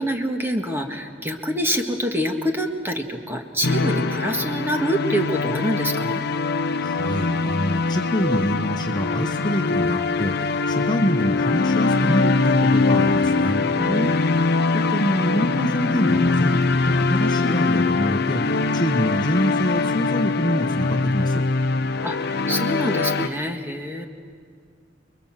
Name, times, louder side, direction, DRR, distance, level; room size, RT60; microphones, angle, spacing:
voice 1, 0.0-6.3 13.8-14.1 22.0-24.1, equal, 10° right, 3 dB, 1.8 m, -26 dB
sound 1, 3.6-23.3, left 3 dB, 55° left, 0.8 m, -22 dB
voice 2, 6.8-13.7 14.7-21.4, equal, 25° left, 3 dB, 1.4 m, -25 dB
29.5 x 22.5 x 7.6 m, 2.2 s
head